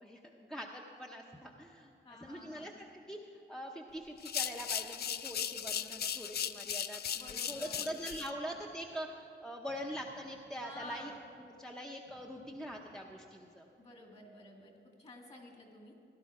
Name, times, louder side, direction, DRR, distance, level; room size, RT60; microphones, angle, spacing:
voice 1, 0.0-1.9 2.2-11.1 11.4-13.7, equal, 5° left, 0 dB, 0.7 m, -44 dB
voice 2, 2.0-2.7 7.1-8.0 10.6-11.2 13.8-15.9, left 1 dB, 35° left, 1 dB, 2.3 m, -51 dB
sound 1, 4.2-8.3, left 8 dB, 55° left, 0.4 m, -37 dB
sound 2, 7.5-9.1 9.7-11.4 12.1-13.2, left 1 dB, 80° left, 3.4 m, -65 dB
17.0 x 12.0 x 4.8 m, 2.8 s
wide cardioid pair, 160°, 19 cm